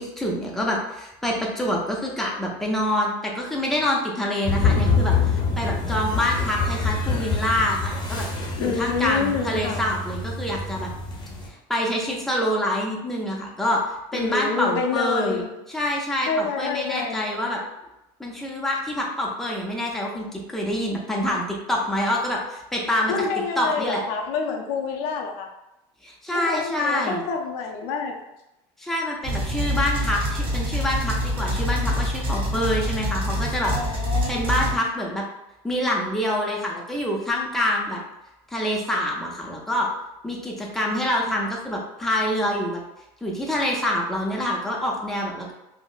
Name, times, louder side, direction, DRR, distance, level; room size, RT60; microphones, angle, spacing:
voice 1, 0.0-10.9 11.7-15.4 15.7-17.6 18.2-23.1 23.6-24.0 26.0-27.2 28.8-34.0 34.3-35.2 35.6-38.0 38.5-39.9 40.2-42.8 43.2-45.5, left 1 dB, ahead, -2 dB, 0.5 m, -26 dB
sound 1, 4.5-11.5, left 4 dB, 35° left, 0.7 m, -25 dB
voice 2, 8.6-9.9 14.1-15.5 16.3-17.3 23.1-25.5 26.3-28.1 33.7-34.7, left 5 dB, 75° left, 2 dB, 0.6 m, -27 dB
sound 2, 29.2-34.8, equal, 40° right, 0.8 m, -26 dB
3.7 x 2.0 x 2.5 m, 0.92 s
supercardioid pair, 130°, 14 cm